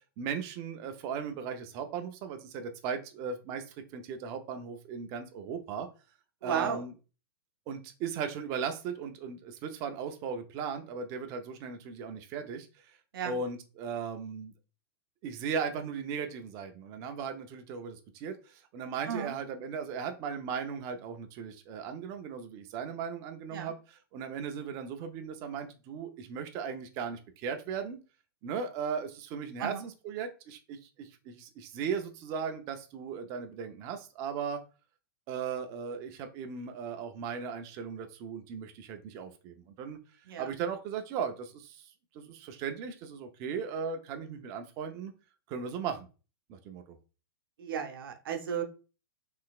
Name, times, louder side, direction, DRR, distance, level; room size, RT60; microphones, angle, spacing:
voice 1, 0.2-3.7 3.9-5.9 6.4-6.9 7.7-12.7 13.2-14.5 15.2-23.7 24.1-28.0 28.4-34.6 35.3-40.0 40.4-41.9 42.1-45.1 45.5-46.1 46.5-47.0, right 6 dB, 25° right, 6 dB, 0.4 m, -37 dB
voice 2, 6.4-6.8 13.1-13.3 19.1-19.3 23.5-23.7 29.6-29.9 40.3-40.5 47.6-48.6, right 7 dB, 65° right, 4 dB, 0.7 m, -34 dB
3.8 x 3.3 x 2.3 m, 0.33 s
hypercardioid pair, 160°, 13 cm